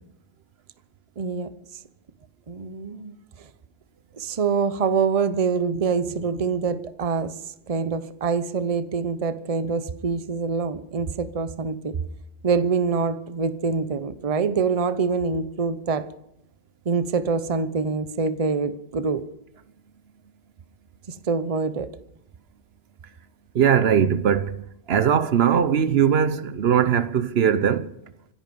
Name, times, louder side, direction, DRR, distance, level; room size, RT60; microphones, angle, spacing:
voice 1, 1.2-1.5 2.5-3.5 4.2-7.3 7.7-12.0 12.4-16.1 16.9-19.2 21.1-21.9, right 5 dB, 35° right, 0.8 m, -25 dB
voice 2, 23.5-24.5 24.9-27.9, right 8 dB, 75° right, 1.0 m, -20 dB
25.5 x 10.5 x 5.4 m
omnidirectional pair, 1.1 m